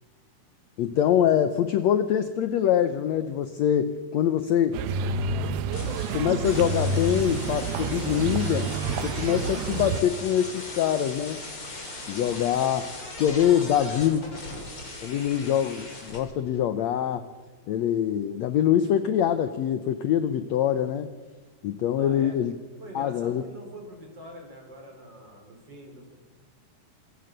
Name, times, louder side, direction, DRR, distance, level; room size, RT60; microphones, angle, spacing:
voice 1, 0.8-4.8 6.1-8.7 9.0-11.4 12.1-12.9 13.2-14.2 15.0-17.3 17.7-21.1 21.6-22.6 22.9-23.4, left 10 dB, 75° left, 11 dB, 1.6 m, -24 dB
sound 1, 4.7-10.0, right 4 dB, 85° right, 2.8 m, -29 dB
sound 2, 5.7-16.2, left 2 dB, 35° left, 5.1 m, -39 dB
voice 2, 22.0-22.4 22.8-26.1, equal, 30° right, 3 dB, 4.7 m, -44 dB
26.0 x 22.5 x 6.7 m, 1.4 s
omnidirectional pair, 4.2 m